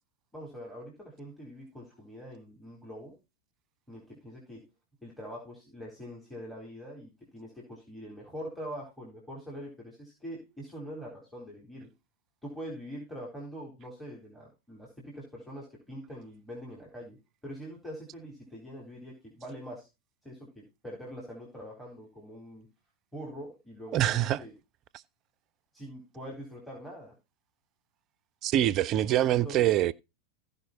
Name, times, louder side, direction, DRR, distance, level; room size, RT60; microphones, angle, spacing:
voice 1, 0.3-3.1 3.9-4.6 5.0-11.9 12.4-17.2 17.4-19.9 20.2-22.7 23.1-24.5 25.7-27.1 29.3-29.6, equal, ahead, 3.9 m, -44 dB
voice 2, 23.9-24.4 28.4-29.9, right 13 dB, 35° right, 0.4 m, -25 dB
15.5 x 5.5 x 4.2 m
figure-of-eight pair, 90°, 0 cm